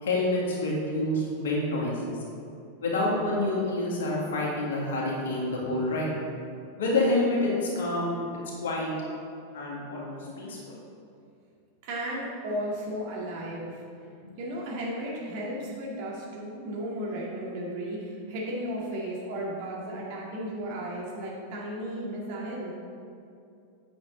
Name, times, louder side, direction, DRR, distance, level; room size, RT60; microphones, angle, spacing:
voice 1, 0.0-2.2 2.8-6.1 6.8-8.2 8.6-8.9 9.5-10.8, left 2 dB, 60° left, -3 dB, 2.0 m, -28 dB
voice 2, 11.8-13.8 14.4-22.7, right 1 dB, 45° right, -4 dB, 1.9 m, -34 dB
8.5 x 6.5 x 3.8 m, 2.5 s
figure-of-eight pair, 90°, 0 cm